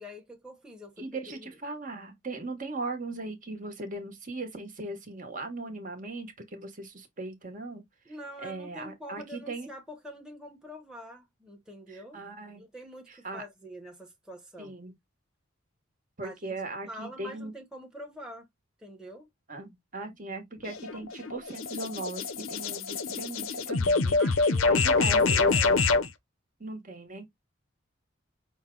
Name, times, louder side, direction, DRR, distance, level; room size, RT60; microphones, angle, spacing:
voice 1, 0.0-1.5 8.0-12.2 12.6-14.7 16.2-16.5 16.8-18.4 18.8-19.3 24.2-25.8, equal, 5° right, 1.1 m, -45 dB
voice 2, 1.0-7.8 8.4-9.7 11.9-12.6 13.1-13.4 14.6-14.9 16.2-17.5 19.5-25.8 26.6-27.3, right 2 dB, 40° right, 1.3 m, -38 dB
sound 1, 20.6-26.1, left 4 dB, 80° left, 0.7 m, -26 dB
6.0 x 2.3 x 3.7 m
head